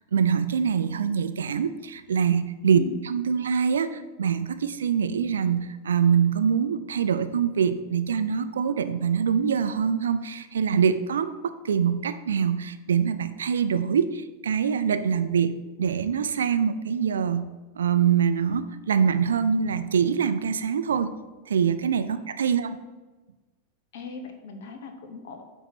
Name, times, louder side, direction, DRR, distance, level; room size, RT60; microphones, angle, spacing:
voice 1, 0.1-2.8 3.0-17.5 17.8-21.2 21.5-22.8, right 7 dB, 65° right, 11 dB, 0.5 m, -24 dB
voice 2, 23.9-25.4, left 5 dB, 55° left, 5 dB, 0.9 m, -38 dB
8.7 x 3.1 x 6.1 m, 1.2 s
figure-of-eight pair, 90°, 0 cm